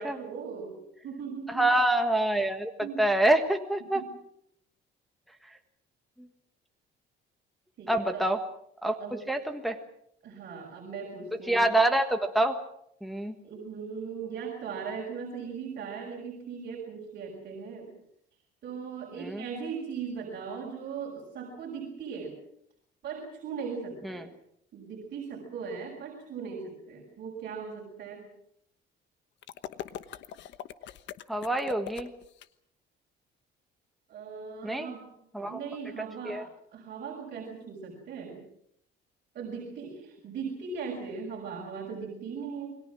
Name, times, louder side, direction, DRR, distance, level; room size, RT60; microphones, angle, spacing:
voice 1, 0.0-1.7 2.8-3.0 3.9-4.1 7.8-8.3 9.0-9.2 10.2-11.6 13.4-17.9 18.6-22.4 23.0-24.3 24.7-28.2 34.1-36.4 36.7-38.4 39.3-42.8, right 6 dB, 50° right, -1 dB, 6.3 m, -39 dB
voice 2, 1.5-4.0 6.2-6.3 7.9-8.4 8.8-9.0 9.3-9.8 11.5-12.6 13.0-13.4 19.2-19.4 24.0-24.3 31.3-32.1 34.6-34.9 35.3-35.6 36.2-36.4, right 1 dB, ahead, 4 dB, 1.5 m, -26 dB
sound 1, 29.4-32.5, left 11 dB, 70° left, 1.2 m, -42 dB
29.0 x 21.5 x 6.2 m, 0.73 s
cardioid pair, 160°, 19 cm